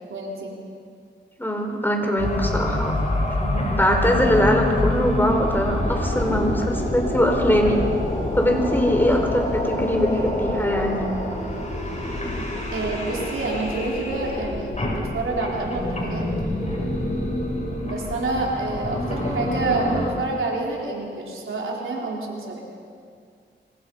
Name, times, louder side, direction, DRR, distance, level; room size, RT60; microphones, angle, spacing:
voice 1, 0.1-0.5 9.8-10.1 12.7-16.3 17.8-22.6, right 2 dB, 85° right, -2 dB, 4.3 m, -28 dB
voice 2, 1.4-2.9 3.4-7.8 8.3-11.0, equal, 10° left, 2 dB, 4.8 m, -21 dB
sound 1, 2.2-20.1, left 1 dB, 35° left, 7.8 m, -27 dB
25.5 x 25.0 x 5.6 m, 2.2 s
cardioid pair, 65°, 20 cm